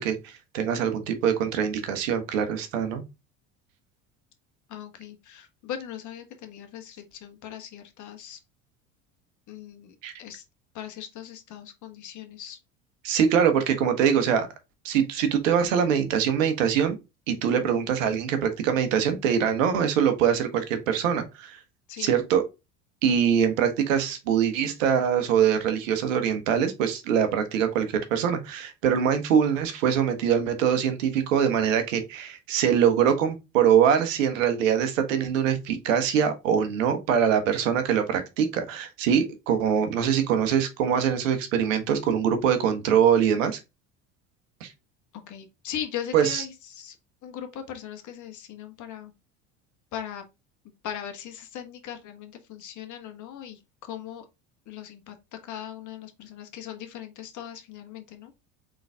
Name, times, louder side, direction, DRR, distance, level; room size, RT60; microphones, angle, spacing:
voice 1, 0.0-3.0 10.0-10.1 13.0-14.5 14.8-17.0 17.3-21.6 22.0-22.4 23.0-43.6 44.6-44.7 46.1-46.4, right 8 dB, 85° right, 1.2 m, -23 dB
voice 2, 4.7-8.4 9.5-10.4 10.7-12.6 17.5-17.6 21.9-22.2 45.3-46.9 47.2-49.1 49.9-50.2 50.8-54.2 54.7-55.1 55.4-58.3, left 9 dB, 50° left, 1.4 m, -39 dB
4.0 x 3.9 x 3.4 m
hypercardioid pair, 85°, 38 cm